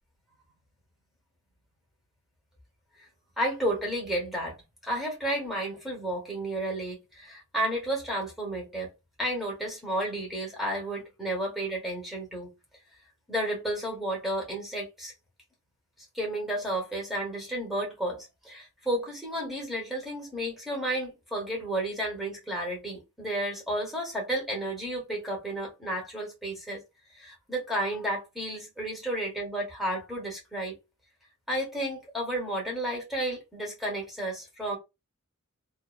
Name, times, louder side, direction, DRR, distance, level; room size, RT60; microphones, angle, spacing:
voice 1, 3.4-4.6 4.8-8.9 9.2-12.5 13.3-15.1 16.1-26.8 27.1-30.7 31.5-34.8, right 1 dB, ahead, 0.9 m, -32 dB
2.5 x 2.4 x 2.4 m
head